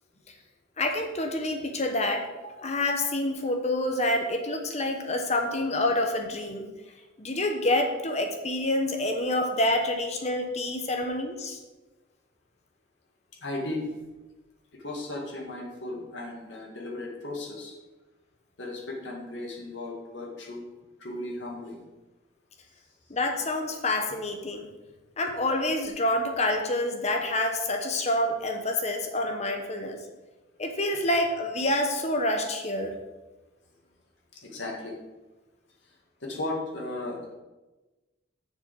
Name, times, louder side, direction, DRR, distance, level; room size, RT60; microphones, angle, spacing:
voice 1, 0.8-6.7 7.2-11.6 23.1-24.7 25.2-30.0 30.6-32.9, left 1 dB, 35° left, 4 dB, 1.0 m, -27 dB
voice 2, 13.4-13.9 14.7-17.7 18.6-20.7 21.0-21.8 34.4-34.9 36.2-37.2, left 2 dB, 70° left, -1 dB, 2.0 m, -35 dB
7.0 x 6.9 x 5.5 m, 1.1 s
head